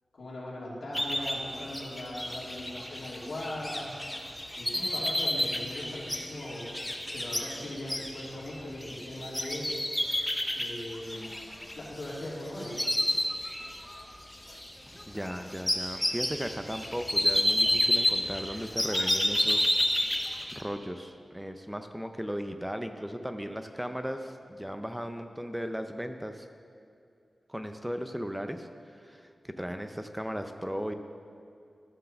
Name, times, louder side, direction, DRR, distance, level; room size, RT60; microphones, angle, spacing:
voice 1, 0.2-3.9 4.6-6.7 7.1-9.7 10.5-11.3 11.7-12.8, left 1 dB, 80° left, -7 dB, 2.8 m, -39 dB
sound 1, 0.9-12.3 12.6-14.0 14.3-20.6, left 1 dB, 10° left, 0.8 m, -30 dB
voice 2, 15.1-19.8 20.2-26.5 27.5-30.9, equal, 5° right, 7 dB, 0.5 m, -36 dB
13.0 x 4.6 x 6.6 m, 2.5 s
wide cardioid pair, 100°, 0 cm